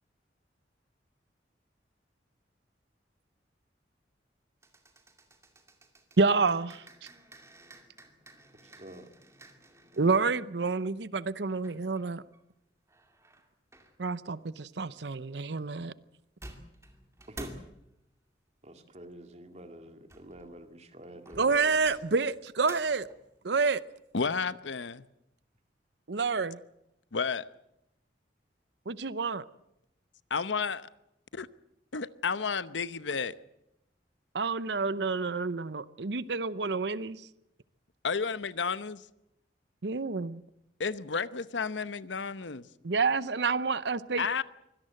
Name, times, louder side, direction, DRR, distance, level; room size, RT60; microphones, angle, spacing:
sound 1, 4.6-10.3 11.6-12.4 12.9-14.0 16.1-16.2 16.4-17.8 19.9-20.7 21.3-23.3, right 1 dB, 15° right, 2.4 m, -51 dB
voice 1, 6.2-6.8 10.0-12.2 14.0-15.9 21.4-23.1 23.4-23.8 26.1-26.6 28.9-29.4 34.3-37.2 39.8-40.4 42.8-44.3, right 4 dB, 70° right, 0.7 m, -28 dB
voice 2, 8.6-9.1 17.3-17.6 18.6-21.8, right 1 dB, 40° right, 2.2 m, -47 dB
voice 3, 24.1-25.0 27.1-27.5 30.3-30.9 31.3-31.5 31.9-33.4 38.0-39.0 40.8-42.7 44.2-44.4, left 5 dB, 90° left, 0.9 m, -32 dB
24.5 x 17.5 x 7.7 m
head